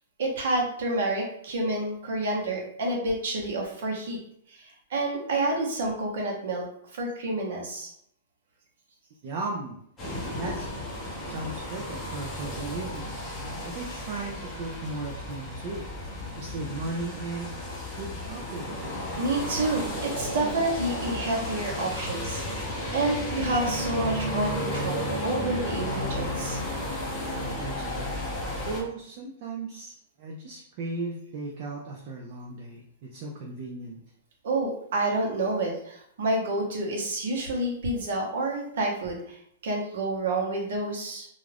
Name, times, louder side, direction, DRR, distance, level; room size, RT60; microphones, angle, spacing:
voice 1, 0.2-4.2 4.5-6.6 6.9-7.9 19.2-26.6 34.4-41.3, right 2 dB, 60° right, 0 dB, 0.9 m, -29 dB
voice 2, 9.2-9.8 10.4-10.7 11.2-13.1 13.6-15.9 16.4-17.6 18.0-18.7 27.6-34.0, right 3 dB, 35° right, -1 dB, 0.4 m, -36 dB
sound 1, 10.0-28.8, left 1 dB, 10° left, 0.7 m, -33 dB
2.4 x 2.3 x 3.3 m, 0.69 s
supercardioid pair, 175°, 0 cm